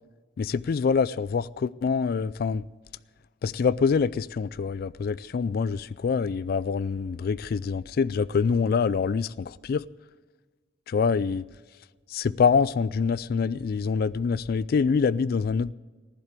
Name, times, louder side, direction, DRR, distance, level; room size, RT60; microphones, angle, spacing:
voice 1, 0.4-2.6 3.4-9.9 10.9-11.4 12.1-15.7, left 5 dB, 55° left, 0.3 m, -25 dB
15.5 x 11.0 x 6.6 m
head